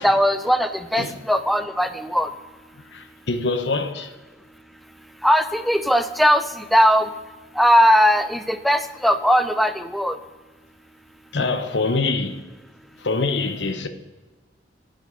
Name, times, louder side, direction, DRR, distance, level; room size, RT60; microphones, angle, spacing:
voice 1, 0.0-2.3 5.2-7.1 7.6-10.2, equal, ahead, 0.4 m, -19 dB
voice 2, 2.9-4.1 11.3-12.4 13.0-13.9, left 3 dB, 85° left, 1.0 m, -24 dB
9.3 x 6.4 x 5.2 m
head